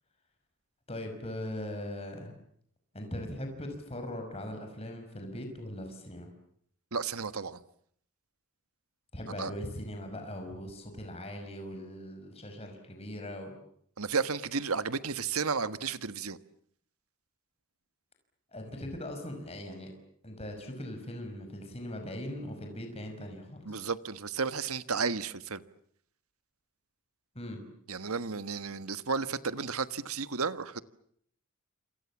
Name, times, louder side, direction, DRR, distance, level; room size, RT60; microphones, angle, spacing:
voice 1, 0.9-2.3 2.9-6.3 9.1-13.5 18.5-19.9 20.2-23.9 27.3-27.6, left 1 dB, 30° left, 5.8 m, -40 dB
voice 2, 6.9-7.6 9.4-9.5 14.0-16.4 23.6-25.6 27.9-30.8, right 5 dB, 90° right, 1.5 m, -33 dB
28.5 x 28.0 x 7.3 m
head